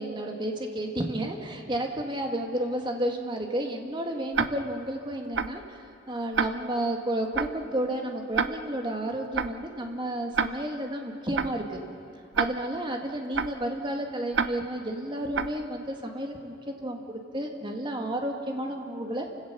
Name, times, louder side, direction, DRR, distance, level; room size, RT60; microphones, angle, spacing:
voice 1, 0.0-5.8 6.1-11.8 12.4-19.3, right 1 dB, 25° right, 3 dB, 1.9 m, -31 dB
Tick-tock, 4.3-4.5 5.3-5.5 6.3-6.5 7.3-7.5 8.3-8.5 9.3-9.5 10.3-10.5 11.3-11.5 12.3-12.5 13.3-13.5 14.3-14.5 15.3-15.5, right 5 dB, 60° right, 0.6 m, -26 dB
29.0 x 16.5 x 6.8 m, 2.7 s
head